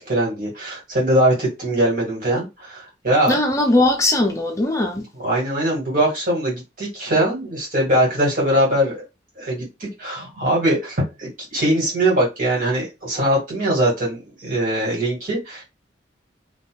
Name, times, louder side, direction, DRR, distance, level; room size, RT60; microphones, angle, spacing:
voice 1, 0.0-3.4 5.2-9.0 9.4-15.6, right 1 dB, 50° right, 2.2 m, -21 dB
voice 2, 3.3-5.0, left 2 dB, 15° left, 0.5 m, -19 dB
4.1 x 2.9 x 2.4 m
head